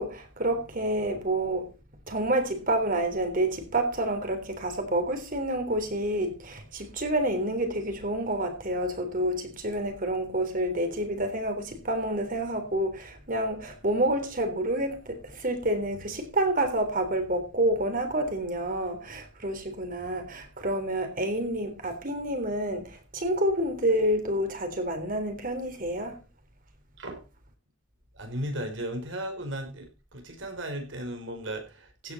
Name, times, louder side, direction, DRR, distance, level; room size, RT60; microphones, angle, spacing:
voice 1, 0.0-1.7 2.1-26.2, right 1 dB, 45° right, 3.6 m, -28 dB
voice 2, 28.2-32.1, right 1 dB, 70° right, 4.5 m, -36 dB
15.5 x 9.4 x 4.2 m
head